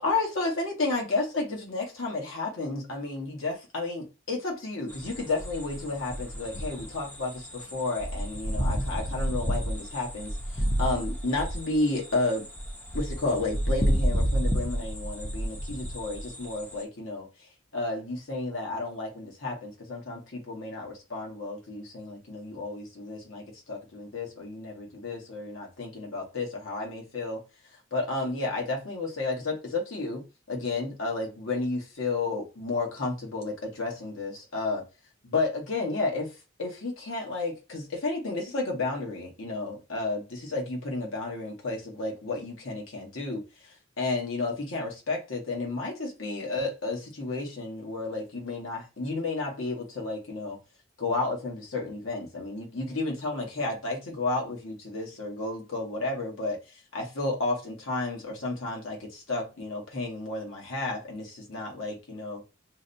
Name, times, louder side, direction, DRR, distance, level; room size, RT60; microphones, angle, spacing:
voice 1, 0.0-12.5 12.9-17.3 17.7-27.4 27.9-30.2 30.5-34.8 35.2-36.3 36.6-43.4 44.0-50.6 51.0-56.6 56.9-62.4, left 3 dB, 75° left, -1 dB, 1.3 m, -32 dB
sound 1, 4.9-16.8, equal, 10° left, 0.5 m, -31 dB
4.6 x 2.2 x 2.6 m, 0.30 s
head